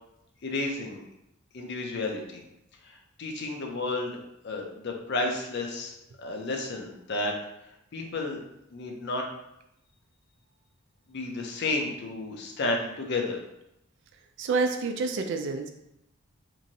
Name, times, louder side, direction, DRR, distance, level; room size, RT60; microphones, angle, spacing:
voice 1, 0.4-1.0 1.5-2.4 2.8-4.2 4.4-7.3 7.9-8.4 8.7-9.2 11.1-13.4, left 2 dB, 55° left, 2 dB, 0.5 m, -32 dB
voice 2, 14.4-15.7, right 4 dB, 55° right, 6 dB, 0.3 m, -28 dB
3.0 x 2.6 x 2.6 m, 0.83 s
head